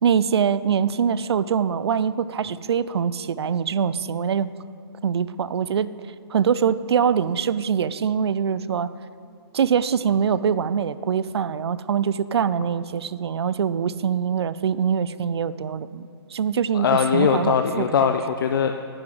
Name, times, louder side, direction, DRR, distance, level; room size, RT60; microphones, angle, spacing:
voice 1, 0.0-4.5 5.0-5.9 6.3-8.9 9.5-18.1, right 7 dB, 75° right, 16 dB, 0.4 m, -23 dB
voice 2, 16.7-18.7, left 7 dB, 55° left, 6 dB, 0.5 m, -21 dB
9.9 x 5.9 x 7.8 m, 2.3 s
hypercardioid pair, 155°, 14 cm